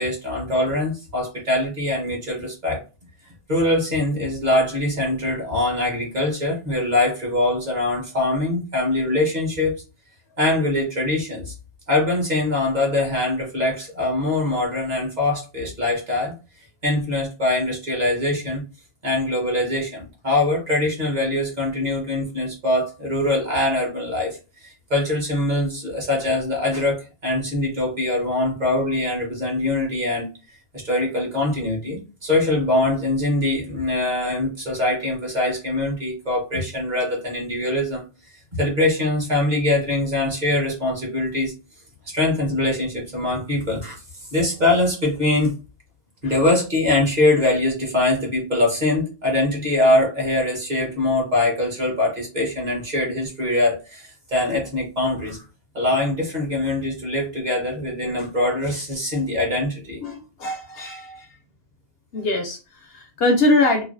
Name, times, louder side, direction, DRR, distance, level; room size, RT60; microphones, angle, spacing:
voice 1, 0.0-2.8 3.5-9.7 10.4-11.5 11.9-16.3 16.8-18.6 19.0-30.3 30.7-38.0 38.5-41.5 42.0-44.0 44.3-45.5 46.2-55.4 55.7-60.0, left 2 dB, 40° right, -1 dB, 1.2 m, -23 dB
voice 2, 60.0-61.3 62.1-63.8, left 2 dB, 60° left, 4 dB, 0.8 m, -22 dB
3.1 x 2.4 x 2.5 m, 0.31 s
omnidirectional pair, 1.2 m